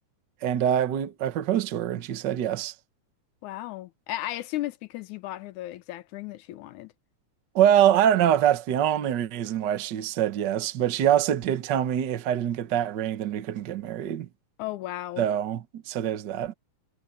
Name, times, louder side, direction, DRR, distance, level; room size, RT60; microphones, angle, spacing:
voice 1, 0.4-2.7 7.5-14.3 15.2-16.5, right 10 dB, 80° right, 0.9 m, -24 dB
voice 2, 3.4-6.9 14.6-15.3, left 15 dB, 80° left, 2.2 m, -35 dB
omnidirectional pair, 3.5 m